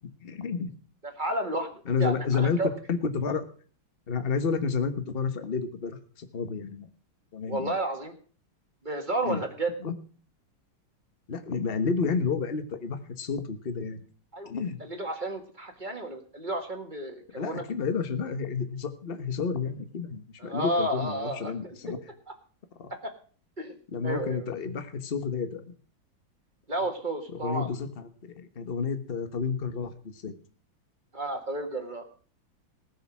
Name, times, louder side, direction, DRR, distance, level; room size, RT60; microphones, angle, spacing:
voice 1, 0.2-0.7 1.9-2.6 2.9-3.4 4.1-6.9 7.3-7.7 9.2-9.4 9.8-9.9 11.3-14.0 14.4-14.8 17.3-22.0 22.8-22.9 23.9-25.8 27.3-30.3, left 5 dB, 30° left, 10 dB, 1.3 m, -30 dB
voice 2, 1.0-2.7 7.5-8.1 8.8-9.7 14.3-14.5 14.8-17.6 20.4-22.0 22.3-22.4 23.0-23.1 23.6-23.7 24.0-24.4 26.7-27.8 31.1-32.0, right 1 dB, 25° right, 5 dB, 1.8 m, -32 dB
19.0 x 6.7 x 6.1 m, 0.42 s
omnidirectional pair, 2.3 m